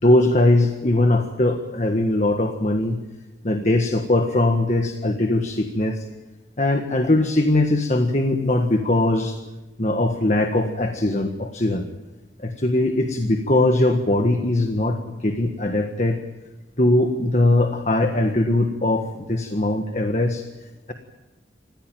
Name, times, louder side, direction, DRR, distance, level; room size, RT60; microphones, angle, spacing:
voice 1, 0.0-3.0 3.4-6.0 6.6-9.4 9.8-11.9 12.4-16.2 16.8-20.4, left 1 dB, 40° left, 5 dB, 1.5 m, -20 dB
28.5 x 15.5 x 9.3 m, 1.1 s
head